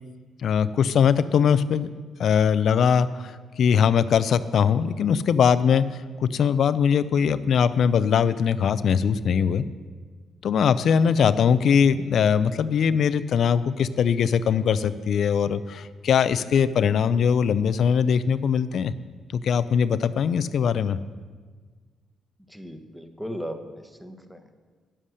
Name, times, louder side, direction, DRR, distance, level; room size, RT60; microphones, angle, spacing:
voice 1, 0.4-1.9 2.2-5.8 6.2-9.6 10.4-18.9 19.3-21.0, left 7 dB, 65° left, 14 dB, 0.4 m, -21 dB
voice 2, 22.5-24.5, equal, 5° right, 7 dB, 1.2 m, -37 dB
9.8 x 7.5 x 6.5 m, 1.5 s
supercardioid pair, 55°, 0 cm